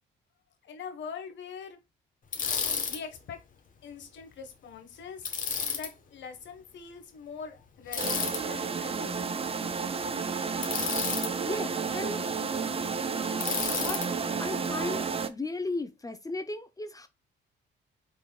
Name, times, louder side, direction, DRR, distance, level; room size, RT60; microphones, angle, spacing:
voice 1, 0.6-1.8 2.9-3.4 3.8-5.3 5.7-9.2, left 6 dB, 65° left, 1.5 m, -43 dB
Bicycle, 2.3-3.0 5.2-5.9 7.9-8.4 10.6-11.3 13.4-14.1, left 6 dB, 45° left, 1.2 m, -31 dB
sound 1, 8.0-15.3, right 5 dB, 30° right, 0.5 m, -31 dB
voice 2, 11.5-12.2 13.8-14.0 14.4-15.0 15.3-17.1, left 2 dB, 15° left, 0.6 m, -35 dB
5.3 x 3.9 x 2.3 m
cardioid pair, 90°, 20 cm